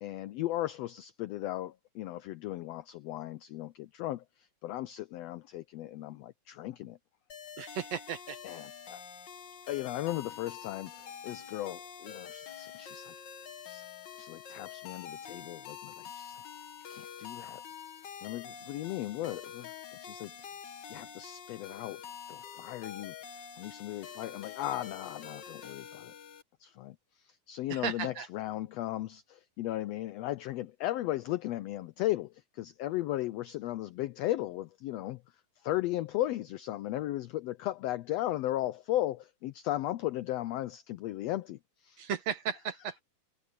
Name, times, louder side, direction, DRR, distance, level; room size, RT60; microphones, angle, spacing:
voice 1, 0.0-7.0 8.4-9.0 9.7-13.1 13.6-13.9 14.2-16.4 16.9-17.6 18.2-19.7 20.0-20.5 20.8-22.0 22.3-26.1 26.6-35.2 35.6-42.1, left 15 dB, 85° left, 1.4 m, -36 dB
sound 1, 7.3-26.4, left 8 dB, 50° left, 1.4 m, -46 dB
voice 2, 7.6-8.4 27.7-28.3 42.0-43.0, right 8 dB, 60° right, 2.5 m, -35 dB
omnidirectional pair, 3.5 m